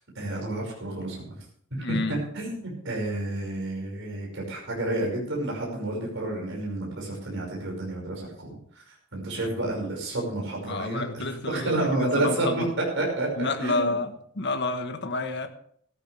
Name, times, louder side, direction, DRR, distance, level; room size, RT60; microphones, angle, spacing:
voice 1, 0.1-1.4 1.9-12.6 13.0-14.0, right 2 dB, 65° right, -2 dB, 5.6 m, -30 dB
voice 2, 1.8-2.2 10.7-12.7 13.4-15.5, left 3 dB, 60° left, 6 dB, 1.4 m, -29 dB
16.0 x 13.5 x 3.4 m, 0.62 s
head